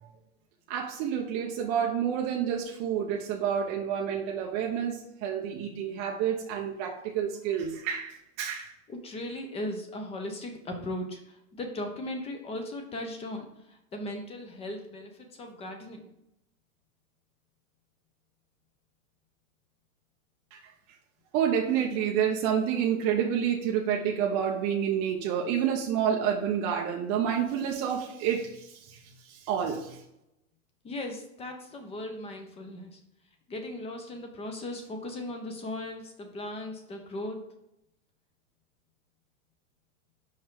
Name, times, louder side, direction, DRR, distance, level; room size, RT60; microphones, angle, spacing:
voice 1, 0.7-8.7 20.5-20.6 21.3-30.0, right 8 dB, 30° right, 0 dB, 0.6 m, -29 dB
voice 2, 8.9-16.1 30.8-33.0 33.5-37.4, left 1 dB, 15° left, 4 dB, 0.8 m, -38 dB
5.5 x 4.6 x 4.7 m, 0.84 s
hypercardioid pair, 140°, 42 cm